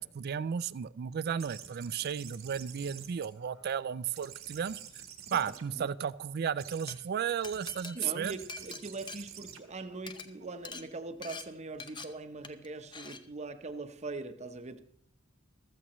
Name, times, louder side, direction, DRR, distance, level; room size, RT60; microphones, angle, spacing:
voice 1, 0.0-4.8 5.3-8.3, right 7 dB, 50° right, 0.4 m, -34 dB
sound 1, 1.4-3.8 4.1-6.1 6.6-7.0 7.4-7.8 8.2-10.7, right 9 dB, 70° right, 1.3 m, -49 dB
voice 2, 5.3-5.9 7.9-14.8, right 3 dB, 30° right, 0.8 m, -42 dB
Glass, 6.9-7.0 7.4-9.7 10.0-10.3 10.7-10.8 11.2-11.4 11.8-12.1 12.4-12.7 12.9-13.2, left 4 dB, 20° left, 0.7 m, -44 dB
14.5 x 13.5 x 3.0 m
head